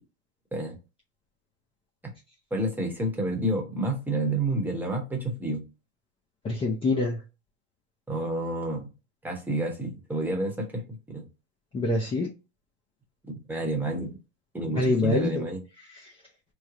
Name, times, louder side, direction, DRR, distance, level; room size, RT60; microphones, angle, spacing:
voice 1, 2.5-5.6 8.1-8.9 9.2-11.3 13.3-14.1 14.5-15.6, right 1 dB, 5° right, 0.9 m, -29 dB
voice 2, 6.4-7.2 11.7-12.3 14.8-15.5 15.9-16.1, left 2 dB, 15° left, 0.6 m, -25 dB
3.2 x 2.0 x 3.7 m
supercardioid pair, 130°, 36 cm